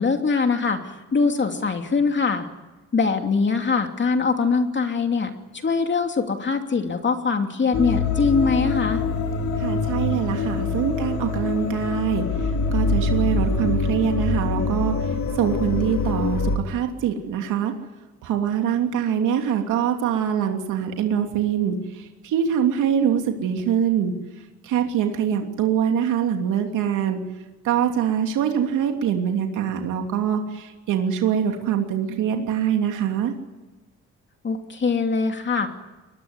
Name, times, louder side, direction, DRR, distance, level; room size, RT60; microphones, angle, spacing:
voice 1, 0.0-2.5 2.9-5.3 5.6-9.0 34.4-35.7, left 4 dB, 40° left, 5 dB, 2.9 m, -22 dB
sound 1, 7.7-16.6, left 3 dB, 65° left, 4.9 m, -24 dB
voice 2, 9.6-12.2 12.7-14.9 15.4-17.7 18.2-21.8 22.2-24.1 24.7-27.2 27.6-33.3, right 8 dB, 85° right, 3 dB, 3.1 m, -23 dB
22.5 x 21.5 x 9.8 m, 1.1 s
cardioid pair, 90°, 30 cm